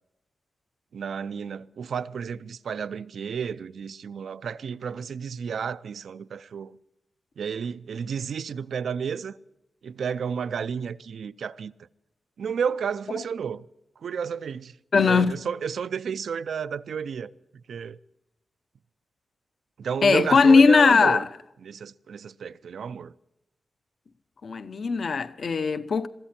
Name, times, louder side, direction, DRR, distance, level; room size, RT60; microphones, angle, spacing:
voice 1, 0.9-6.7 7.4-9.4 9.8-11.7 12.4-13.6 14.0-14.8 15.1-17.3 17.7-18.0 19.8-21.2 21.6-23.1, right 6 dB, 75° right, 0.5 m, -32 dB
voice 2, 14.9-15.4 20.0-21.3 24.4-26.1, left 4 dB, 55° left, 0.8 m, -19 dB
22.5 x 14.5 x 4.4 m
wide cardioid pair, 145°, 0 cm